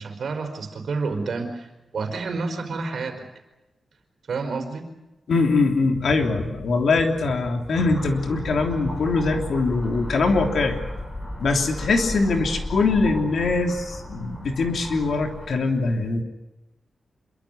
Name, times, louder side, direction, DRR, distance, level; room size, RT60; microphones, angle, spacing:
voice 1, 0.0-3.2 4.3-4.9, right 4 dB, 65° right, 6 dB, 4.8 m, -29 dB
voice 2, 5.3-10.8 11.4-16.2, left 3 dB, 65° left, 3 dB, 3.3 m, -22 dB
sound 1, 7.7-15.5, left 1 dB, 25° left, 7.5 m, -34 dB
26.5 x 23.5 x 6.9 m, 1.0 s
wide cardioid pair, 165°, 0 cm